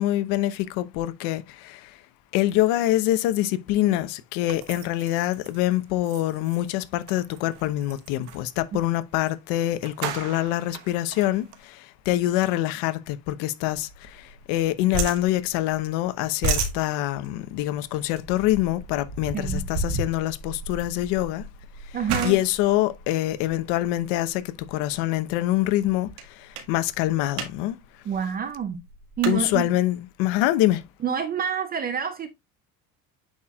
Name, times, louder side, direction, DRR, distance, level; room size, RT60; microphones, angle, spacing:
voice 1, 0.0-1.8 2.3-11.4 12.1-13.9 14.5-21.4 22.2-24.4 24.7-26.1 26.7-27.8 29.3-30.8, left 15 dB, 65° left, 1.0 m, -25 dB
sound 1, 4.5-8.5 9.2-9.3 9.6-11.6, right 11 dB, 80° right, 1.3 m, -41 dB
sound 2, 13.7-14.6 14.9-15.9 16.2-24.0 24.6-24.9 25.3-25.4 25.7-26.2 26.5-26.7 27.1-27.5 27.8-27.9 28.1-29.4, right 3 dB, 65° right, 2.1 m, -31 dB
voice 2, 19.3-19.7 21.9-22.4 28.0-28.8 29.2-29.6 31.0-32.3, right 7 dB, 20° right, 0.5 m, -27 dB
9.3 x 4.4 x 2.3 m
cardioid pair, 165°, 44 cm